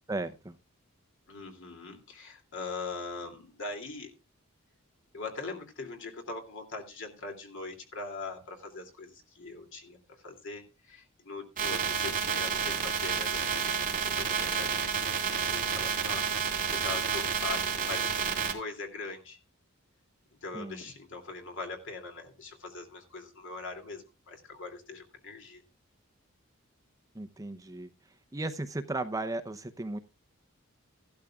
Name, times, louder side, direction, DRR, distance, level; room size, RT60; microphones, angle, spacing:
voice 1, 0.1-0.5 20.5-20.8 27.1-27.9 28.3-30.0, right 2 dB, 15° right, 8 dB, 0.6 m, -35 dB
voice 2, 1.3-4.1 5.1-13.8 14.0-19.4 20.4-25.6, left 3 dB, 60° left, 4 dB, 2.6 m, -42 dB
sound 1, 11.6-18.5, right 6 dB, 40° right, 2.4 m, -30 dB
15.5 x 12.0 x 2.3 m, 0.29 s
head